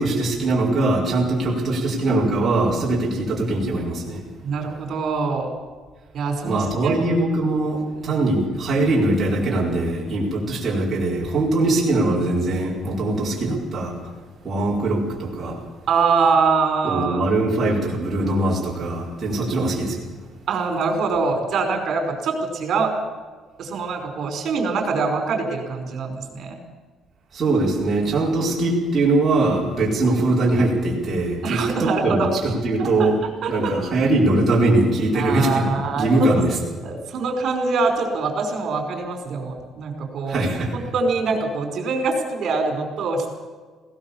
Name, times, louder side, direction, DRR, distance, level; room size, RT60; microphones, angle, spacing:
voice 1, 0.0-4.2 6.4-14.0 14.4-15.6 16.8-20.0 27.3-33.2 33.5-36.6 40.3-40.7, right 2 dB, 25° right, -5 dB, 4.8 m, -21 dB
voice 2, 4.4-5.5 6.1-6.9 8.0-8.1 15.9-17.2 20.5-22.9 23.6-26.6 31.4-32.3 32.8-33.1 33.4-33.7 35.1-36.1 36.8-40.4 40.9-43.3, right 4 dB, 50° right, 4 dB, 5.0 m, -24 dB
20.0 x 18.0 x 7.2 m, 1.4 s
cardioid pair, 170°, 0 cm